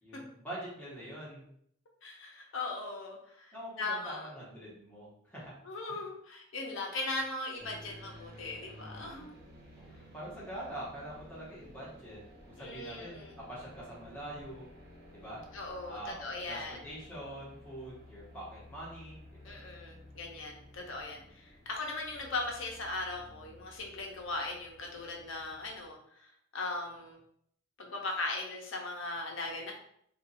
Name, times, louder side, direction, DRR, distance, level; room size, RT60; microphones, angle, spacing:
voice 1, 0.0-1.4 3.5-5.5 5.9-6.0 9.8-14.7 15.1-15.4 15.9-19.6 20.7-20.9, right 1 dB, 10° left, -7 dB, 1.2 m, -45 dB
voice 2, 2.0-4.3 5.6-9.3 12.6-13.3 15.5-16.8 19.4-27.2 27.8-29.7, left 2 dB, 75° left, 0 dB, 0.8 m, -39 dB
sound 1, 7.6-25.9, left 1 dB, 50° right, 1.2 m, -54 dB
2.6 x 2.5 x 4.0 m, 0.69 s
head